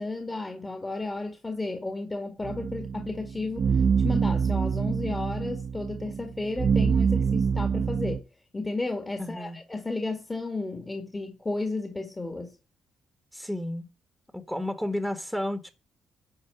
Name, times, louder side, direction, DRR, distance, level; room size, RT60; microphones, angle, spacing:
voice 1, 0.0-8.3 8.5-12.5, left 2 dB, 20° left, 1.9 m, -33 dB
sound 1, 2.4-8.2, right 6 dB, 50° right, 1.0 m, -26 dB
voice 2, 9.2-9.6 13.3-13.9 14.3-15.7, left 1 dB, 5° left, 1.5 m, -32 dB
10.5 x 4.4 x 7.0 m
cardioid pair, 90°, 0 cm